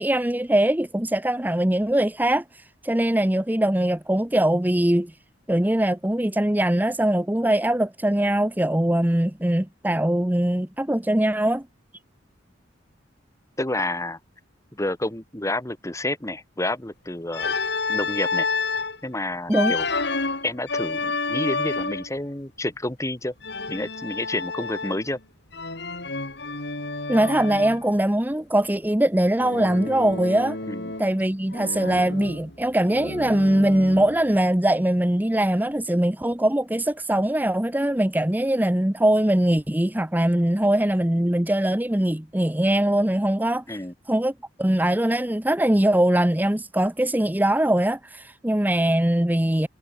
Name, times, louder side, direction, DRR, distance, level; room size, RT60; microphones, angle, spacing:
voice 1, 0.0-5.1 5.5-11.6 19.5-19.7 27.1-30.6 31.0-43.6 44.1-44.3 44.6-49.7, right 1 dB, 10° right, 0.9 m, -22 dB
voice 2, 13.6-14.2 14.7-17.5 17.9-18.5 19.0-19.9 20.4-23.3 23.7-25.2 30.7-30.9 43.7-43.9, left 1 dB, 15° left, 2.0 m, -29 dB
Organ, 17.3-19.0 19.5-22.2 23.4-25.2 25.5-27.8 29.4-31.2 31.5-34.2, left 3 dB, 60° left, 5.2 m, -30 dB
head